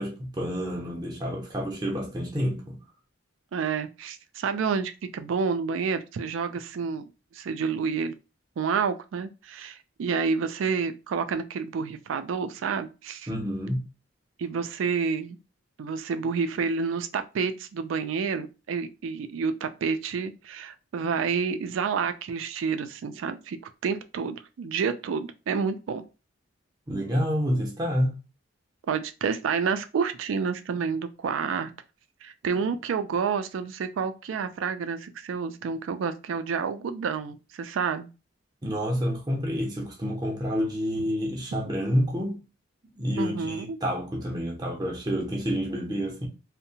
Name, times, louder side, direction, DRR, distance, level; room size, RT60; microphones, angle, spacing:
voice 1, 0.0-2.8 13.3-13.8 26.9-28.1 38.6-42.4 42.9-46.3, equal, 20° right, 0.6 m, -28 dB
voice 2, 3.5-7.0 7.3-8.1 8.6-13.3 14.4-15.4 15.8-23.6 23.8-26.0 28.9-31.7 32.2-38.1 43.2-43.8, right 5 dB, 85° right, 0.3 m, -29 dB
2.7 x 2.1 x 2.7 m
head